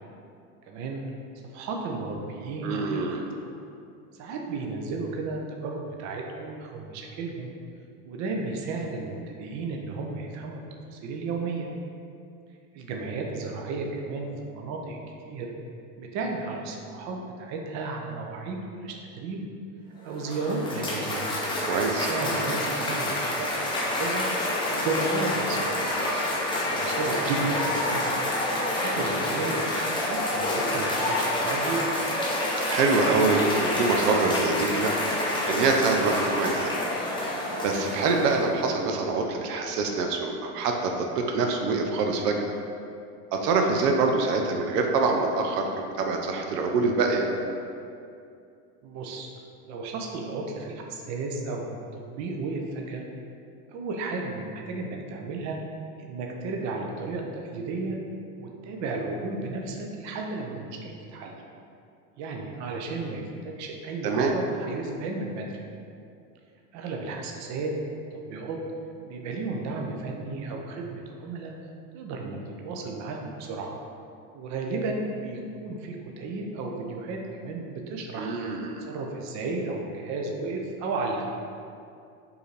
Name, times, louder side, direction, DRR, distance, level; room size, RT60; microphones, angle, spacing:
voice 1, 0.7-1.0 1.5-3.0 4.1-7.5 8.0-10.6 10.9-11.7 12.7-15.0 15.2-15.5 16.0-19.4 20.0-21.3 22.1-24.3 24.7-25.7 26.7-28.2 28.7-29.6 30.0-31.9 37.8-38.1 48.8-49.3 49.7-53.0 53.7-55.6 56.0-58.0 58.4-61.3 62.2-65.6 66.7-68.0 68.3-68.6 69.1-71.5 71.9-73.7 74.3-78.3 78.8-81.2, right 3 dB, 40° right, 1 dB, 0.6 m, -33 dB
voice 2, 2.6-3.3 21.6-22.1 32.6-35.0 35.5-36.7 37.6-42.4 43.3-47.3 64.0-64.3 78.1-78.8, right 3 dB, 80° right, 3 dB, 0.6 m, -25 dB
Cheering / Applause, 20.0-38.6, left 1 dB, 10° left, 0.5 m, -28 dB
4.7 x 2.6 x 3.2 m, 2.5 s
hypercardioid pair, 100°, 47 cm